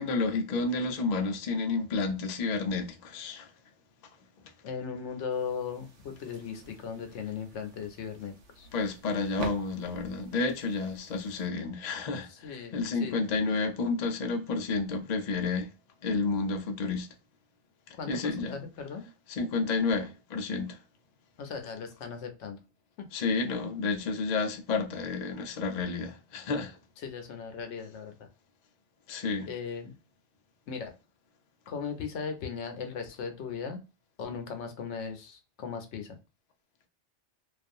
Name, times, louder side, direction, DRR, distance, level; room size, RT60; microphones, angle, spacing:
voice 1, 0.0-3.5 8.7-15.7 16.0-17.1 17.9-18.6 19.3-20.8 23.1-26.8 29.1-29.5, left 4 dB, 55° left, 0.4 m, -30 dB
voice 2, 4.6-8.7 12.3-13.2 18.0-19.1 21.4-22.6 23.0-23.1 27.0-28.3 29.5-29.9 30.7-30.9 31.7-33.8 34.2-36.2, left 6 dB, 75° left, 0.9 m, -38 dB
sound 1, 5.3-11.5, right 4 dB, 80° right, 1.0 m, -47 dB
2.5 x 2.3 x 2.5 m
omnidirectional pair, 1.2 m